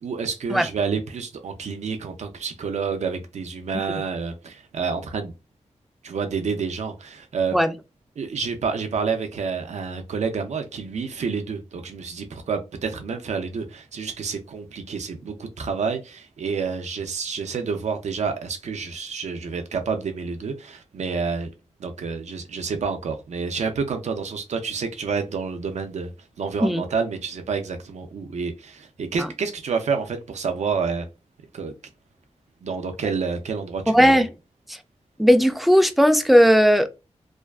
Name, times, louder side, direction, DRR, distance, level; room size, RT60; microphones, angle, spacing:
voice 1, 0.0-5.3 6.0-7.6 8.2-21.5 21.8-26.1 26.4-31.1 31.5-31.7 32.6-34.1, right 5 dB, 70° right, 0.4 m, -29 dB
voice 2, 33.9-34.3 34.7-34.8 35.2-36.9, equal, ahead, 0.3 m, -17 dB
2.5 x 2.3 x 2.2 m
wide cardioid pair, 95°, 12 cm